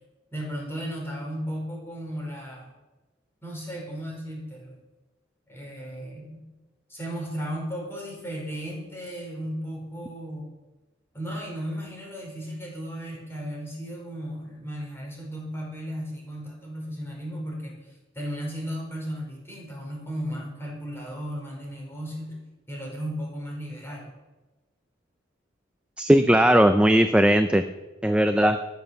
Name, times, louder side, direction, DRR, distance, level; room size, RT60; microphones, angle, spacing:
voice 1, 0.3-2.7 3.4-4.8 5.5-6.4 6.9-10.6 11.1-22.4 22.7-24.1, equal, 10° left, -2 dB, 4.8 m, -35 dB
voice 2, 26.0-27.6 28.0-28.6, right 1 dB, 5° right, 8 dB, 0.5 m, -18 dB
13.5 x 9.4 x 7.0 m, 1.1 s
head